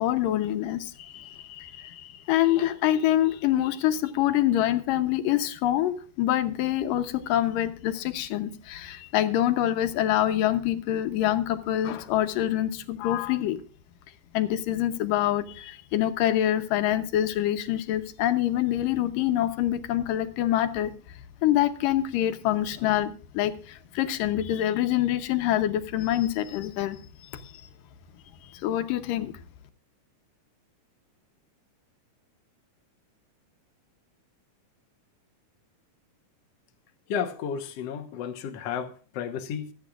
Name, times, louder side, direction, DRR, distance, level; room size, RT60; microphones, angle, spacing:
voice 1, 0.0-13.6 14.3-20.9 21.4-27.0 27.3-27.5 28.5-29.4, left 12 dB, 85° left, 2.6 m, -26 dB
voice 2, 37.1-39.7, left 7 dB, 60° left, 1.9 m, -32 dB
25.5 x 8.4 x 2.4 m
omnidirectional pair, 3.8 m